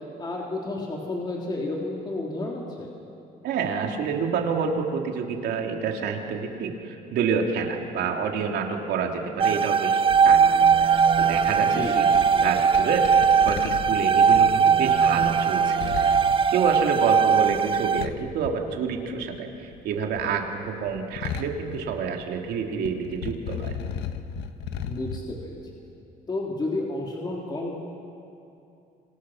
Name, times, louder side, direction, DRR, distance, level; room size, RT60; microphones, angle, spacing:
voice 1, 0.2-2.9 11.6-12.0 24.9-25.6 26.3-27.8, left 2 dB, 25° left, -2 dB, 3.3 m, -31 dB
voice 2, 3.4-12.0 12.4-13.1 13.4-16.2 16.5-19.5 19.8-23.7, right 6 dB, 75° right, 2 dB, 3.0 m, -28 dB
sound 1, 9.4-18.1, right 6 dB, 30° right, 0.6 m, -20 dB
sound 2, 10.1-19.4 19.6-22.5 22.8-25.2, left 7 dB, 85° left, 1.5 m, -36 dB
27.0 x 26.5 x 6.4 m, 2.7 s
cardioid pair, 110°, 17 cm